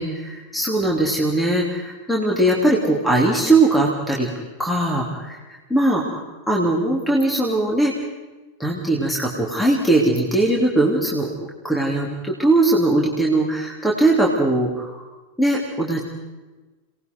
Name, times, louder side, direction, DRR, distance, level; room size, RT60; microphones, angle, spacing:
voice 1, 0.0-4.3 4.6-5.4 5.7-6.0 6.5-7.9 8.6-11.3 11.6-15.1 15.4-16.0, right 2 dB, 5° left, -2 dB, 3.4 m, -20 dB
30.0 x 19.5 x 4.7 m, 1.2 s
figure-of-eight pair, 90°, 0 cm